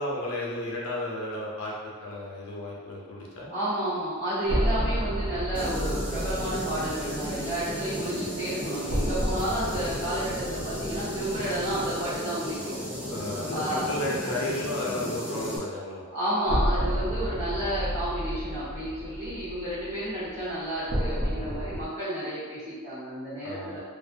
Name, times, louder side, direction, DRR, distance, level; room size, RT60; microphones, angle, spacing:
voice 1, 0.0-3.5 13.1-16.0 23.4-23.8, left 1 dB, 75° left, -4 dB, 0.6 m, -33 dB
voice 2, 3.5-12.8 13.5-13.9 14.2-14.4 16.1-23.8, right 1 dB, 30° right, -15 dB, 0.9 m, -31 dB
sound 1, 4.5-12.2 12.5-12.6 16.5-21.9, equal, 75° right, 0.7 m, -31 dB
sound 2, 5.5-15.6, equal, 5° right, 0.4 m, -34 dB
2.5 x 2.1 x 2.5 m, 1.5 s
head